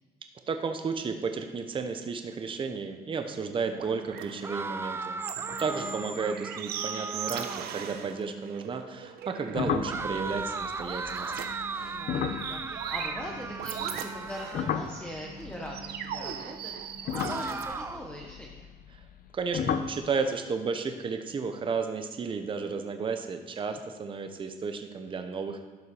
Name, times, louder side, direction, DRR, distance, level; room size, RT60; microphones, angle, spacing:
voice 1, 0.5-5.2 5.6-11.3 18.9-19.0 19.3-25.6, right 5 dB, 30° right, 6 dB, 0.8 m, -33 dB
sound 1, 3.3-17.7, right 7 dB, 70° right, 0.9 m, -39 dB
sound 2, 4.4-7.8 9.9-15.1 17.1-18.2, right 3 dB, 15° right, 0.4 m, -37 dB
sound 3, 9.5-13.9 14.2-16.3 16.9-19.3 19.5-20.1, left 8 dB, 60° left, 0.7 m, -34 dB
voice 2, 11.7-18.7, equal, 10° left, -1 dB, 1.1 m, -42 dB
12.0 x 5.5 x 4.9 m, 1.4 s
cardioid pair, 110°, 17 cm